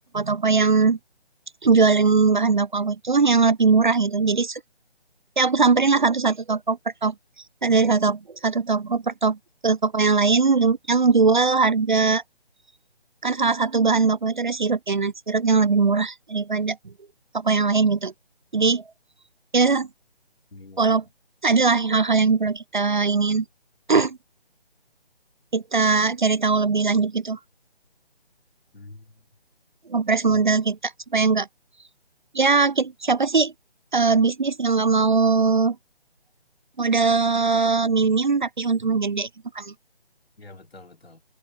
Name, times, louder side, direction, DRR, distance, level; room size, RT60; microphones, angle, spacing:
voice 1, 0.1-1.0 1.6-4.6 5.4-7.1 7.6-9.4 9.6-12.2 13.2-16.8 17.3-18.1 18.5-18.8 19.5-19.9 20.8-21.0 21.4-23.5 23.9-24.2 25.5-27.4 29.9-31.5 32.3-33.5 33.9-35.8 36.8-39.3 39.6-39.7, right 4 dB, 50° right, 0.4 m, -20 dB
voice 2, 20.5-21.0 28.7-29.2 30.3-30.4 40.4-41.2, left 2 dB, 70° left, 3.1 m, -46 dB
figure-of-eight pair, 155°, 32 cm